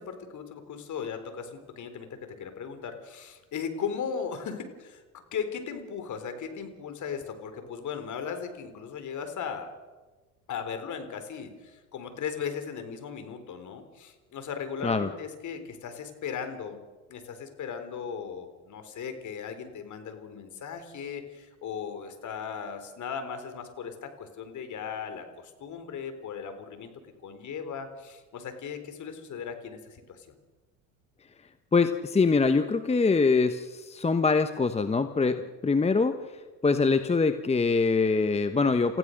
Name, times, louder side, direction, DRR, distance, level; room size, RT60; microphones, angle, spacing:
voice 1, 0.0-9.7 10.5-16.8 17.1-26.9 27.2-30.3 35.2-35.4, left 7 dB, 45° left, 8 dB, 3.9 m, -37 dB
voice 2, 31.7-39.0, left 4 dB, 15° left, 9 dB, 1.1 m, -24 dB
29.0 x 15.5 x 6.6 m, 1.3 s
hypercardioid pair, 80°, 41 cm